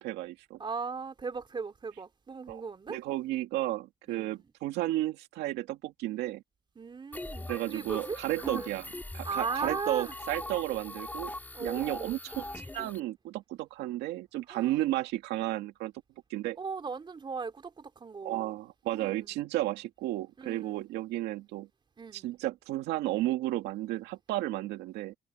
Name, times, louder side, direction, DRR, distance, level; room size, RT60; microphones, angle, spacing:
voice 1, 0.0-0.6 2.5-2.6 2.9-6.4 7.5-8.8 9.1-11.3 11.6-15.9 16.3-16.6 18.2-21.7 22.1-25.2, right 16 dB, 90° right, 2.1 m, -33 dB
voice 2, 0.6-3.0 4.1-4.4 6.8-8.7 9.2-10.1 11.5-12.2 14.5-14.7 16.6-18.5 18.9-19.3 20.4-20.8 22.0-22.3, right 5 dB, 30° right, 3.4 m, -38 dB
sound 1, 7.1-13.0, left 2 dB, 10° left, 2.5 m, -41 dB
cardioid pair, 110°, 17 cm